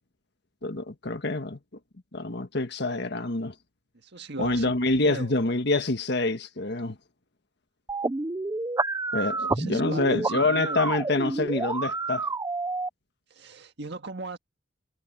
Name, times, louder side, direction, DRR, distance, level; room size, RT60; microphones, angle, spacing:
voice 1, 0.6-1.6 2.1-3.5 4.4-7.0 9.1-12.3, left 2 dB, 65° left, 1.6 m, -26 dB
voice 2, 4.1-4.7 5.0-5.3 9.6-10.8 13.3-14.4, right 3 dB, 65° right, 1.8 m, -37 dB
sound 1, 7.9-12.9, right 3 dB, 20° right, 0.5 m, -29 dB
head